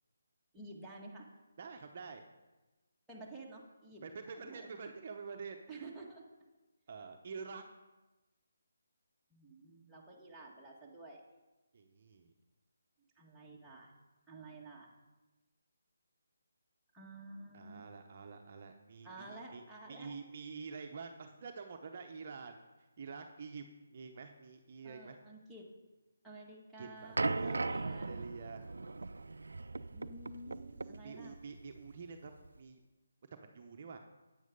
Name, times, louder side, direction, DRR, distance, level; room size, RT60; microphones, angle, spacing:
voice 1, 0.5-1.3 3.1-4.7 5.7-6.3 9.3-11.2 13.2-13.9 14.3-14.9 16.9-17.9 19.0-20.1 24.8-25.7 26.2-28.1 29.9-31.4, right 2 dB, 5° right, -6 dB, 1.8 m, -51 dB
voice 2, 1.6-2.2 4.0-5.9 6.9-7.6 11.7-12.3 17.5-19.6 19.9-22.7 23.0-23.6 23.9-25.2 26.8-28.6 30.5-32.3 32.6-32.8 33.3-34.0, right 5 dB, 45° right, 4 dB, 0.9 m, -47 dB
sound 1, 27.2-32.6, right 3 dB, 80° right, 0.4 m, -39 dB
9.5 x 8.7 x 5.4 m, 1.1 s
figure-of-eight pair, 155°, 0 cm